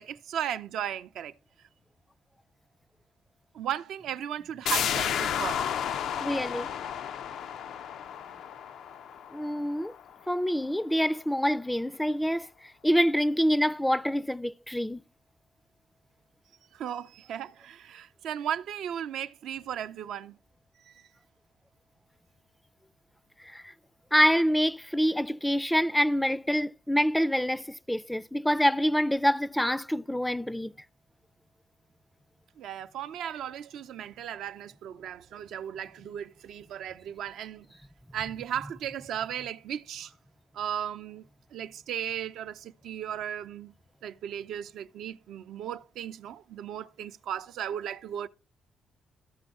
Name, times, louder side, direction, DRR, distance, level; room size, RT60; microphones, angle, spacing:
voice 1, 0.0-1.3 3.5-5.6 16.7-20.4 32.6-37.7 38.1-40.1 40.5-41.3 41.5-43.7 44.0-48.3, right 10 dB, 80° right, 0.5 m, -36 dB
sound 1, 4.7-10.1 10.5-10.6, left 9 dB, 75° left, 0.4 m, -32 dB
voice 2, 6.2-6.7 9.3-9.9 10.3-15.0 23.4-23.7 24.1-30.7, equal, 5° left, 0.4 m, -26 dB
13.5 x 6.2 x 3.6 m
cardioid pair, 90°, 0 cm